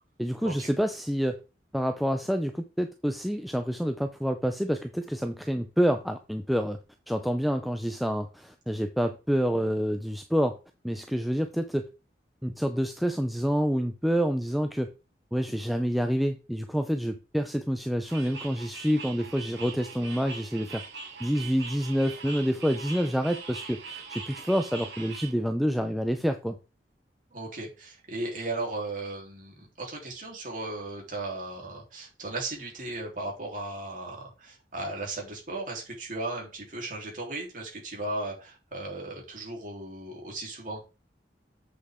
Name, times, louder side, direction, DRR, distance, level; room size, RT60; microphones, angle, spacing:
voice 1, 0.2-1.4 1.7-6.8 7.1-10.6 10.8-11.9 12.4-14.9 15.3-20.8 21.2-26.6, equal, ahead, 6 dB, 0.5 m, -28 dB
sound 1, 18.0-25.3, right 4 dB, 85° right, 2.8 m, -42 dB
voice 2, 27.3-40.8, right 2 dB, 50° right, -1 dB, 3.4 m, -36 dB
7.8 x 6.6 x 3.6 m, 0.30 s
head